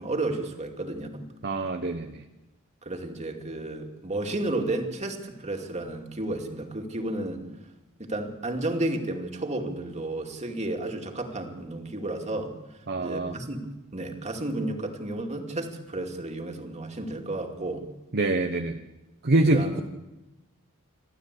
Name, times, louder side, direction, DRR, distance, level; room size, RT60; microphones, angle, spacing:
voice 1, 0.0-1.3 2.8-7.4 8.0-12.5 13.0-17.9 19.5-19.8, right 2 dB, 30° right, 3 dB, 2.5 m, -32 dB
voice 2, 1.4-2.2 12.9-13.4 18.1-18.8 19.2-19.8, right 2 dB, 50° right, 5 dB, 1.1 m, -25 dB
29.5 x 12.5 x 8.3 m, 1.0 s
head